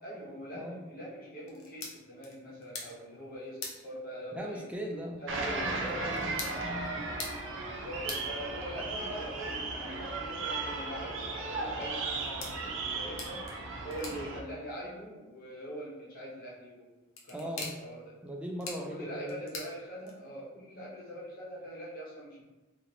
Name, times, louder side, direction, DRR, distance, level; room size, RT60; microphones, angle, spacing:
voice 1, 0.0-4.6 5.2-6.5 7.7-13.4 13.8-16.9 17.3-18.0 18.9-22.4, equal, 45° left, -7 dB, 0.8 m, -43 dB
sound 1, 1.4-20.5, left 3 dB, 85° left, 0.7 m, -48 dB
voice 2, 4.3-5.2 5.5-6.3 6.6-7.1 17.3-17.7 18.2-19.4, equal, 5° right, 0 dB, 0.4 m, -39 dB
sound 2, 5.3-14.4, right 3 dB, 65° right, 0.5 m, -36 dB
3.0 x 2.8 x 2.6 m, 1.2 s
head